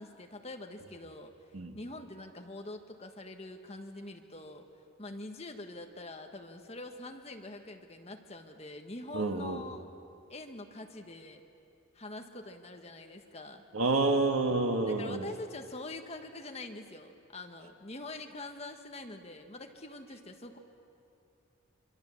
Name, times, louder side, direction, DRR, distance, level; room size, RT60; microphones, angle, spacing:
voice 1, 0.0-1.3 1.7-4.7 5.0-9.9 10.3-11.4 11.9-13.6 14.8-20.6, left 2 dB, 30° left, 4 dB, 1.5 m, -44 dB
voice 2, 9.1-9.6 13.7-15.3, right 3 dB, 90° right, 5 dB, 1.7 m, -28 dB
26.0 x 25.0 x 7.2 m, 2.7 s
head